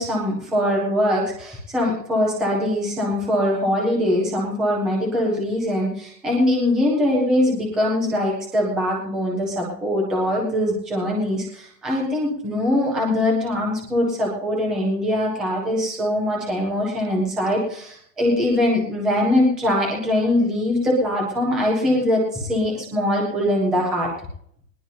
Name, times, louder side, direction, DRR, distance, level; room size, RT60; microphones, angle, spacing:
voice 1, 0.0-24.1, left 1 dB, ahead, -2 dB, 0.5 m, -22 dB
19.5 x 19.0 x 2.7 m, 0.66 s
hypercardioid pair, 160°, 50 cm